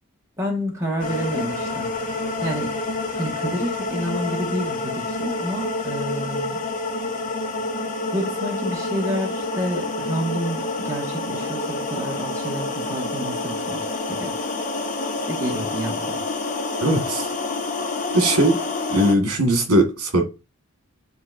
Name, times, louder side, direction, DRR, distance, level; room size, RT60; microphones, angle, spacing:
voice 1, 0.4-1.9 2.4-2.7 3.1-6.6 8.1-14.3 15.3-16.2, equal, 15° right, 1.7 m, -29 dB
sound 1, 1.0-19.1, left 2 dB, 35° left, 0.7 m, -28 dB
voice 2, 16.8-17.3 18.1-18.6 18.9-20.2, right 1 dB, 80° right, 1.8 m, -19 dB
9.5 x 4.0 x 2.6 m
head